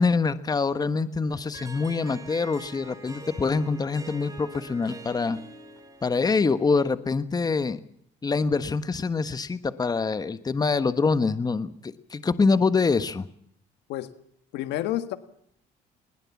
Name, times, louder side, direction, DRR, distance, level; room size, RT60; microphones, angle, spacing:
voice 1, 0.0-5.4 6.0-7.8 8.2-13.3, left 4 dB, 25° left, 12 dB, 1.3 m, -25 dB
Harp, 1.3-7.1, right 2 dB, 20° right, 4.5 m, -45 dB
voice 2, 14.5-15.2, left 14 dB, 85° left, 11 dB, 1.7 m, -29 dB
21.5 x 21.0 x 7.3 m, 0.68 s
cardioid pair, 110°, 17 cm